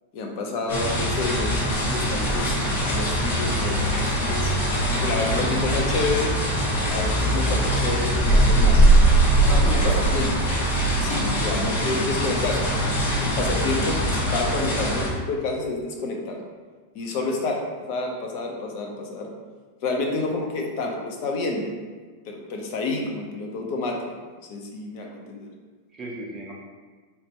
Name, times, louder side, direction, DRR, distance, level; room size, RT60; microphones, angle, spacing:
voice 1, 0.1-2.6 2.9-4.5 4.9-6.3 6.9-8.8 9.5-9.6 9.9-10.3 11.0-12.9 13.2-16.4 16.9-19.3 19.8-21.6 22.2-24.0 24.5-25.5, left 3 dB, 45° left, 1 dB, 0.7 m, -29 dB
sound 1, 0.7-15.1, right 1 dB, 80° left, 1.4 m, -22 dB
voice 2, 9.4-10.0 11.1-11.5 25.9-26.5, right 2 dB, 15° right, -2 dB, 0.6 m, -34 dB
4.2 x 3.2 x 2.9 m, 1.4 s
supercardioid pair, 165°, 0 cm